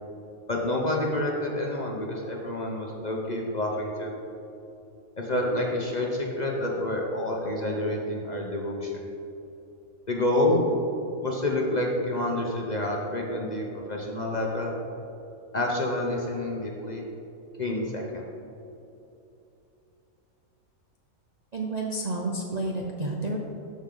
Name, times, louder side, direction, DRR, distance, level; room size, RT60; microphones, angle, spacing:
voice 1, 0.5-4.1 5.2-9.0 10.1-10.7 11.2-14.7 15.5-17.0 17.6-18.2, left 1 dB, 35° left, -1 dB, 0.8 m, -28 dB
voice 2, 21.5-23.4, right 2 dB, 45° right, -1 dB, 0.5 m, -30 dB
13.0 x 5.1 x 3.8 m, 2.9 s
omnidirectional pair, 1.6 m